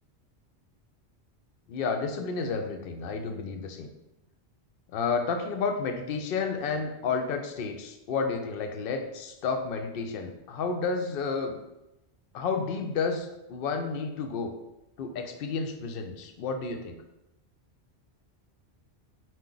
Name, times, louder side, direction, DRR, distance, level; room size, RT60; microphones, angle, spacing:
voice 1, 1.7-3.9 4.9-11.6 12.3-14.5 15.0-17.0, left 4 dB, 65° left, 5 dB, 0.7 m, -31 dB
4.6 x 2.5 x 3.8 m, 0.94 s
omnidirectional pair, 1.1 m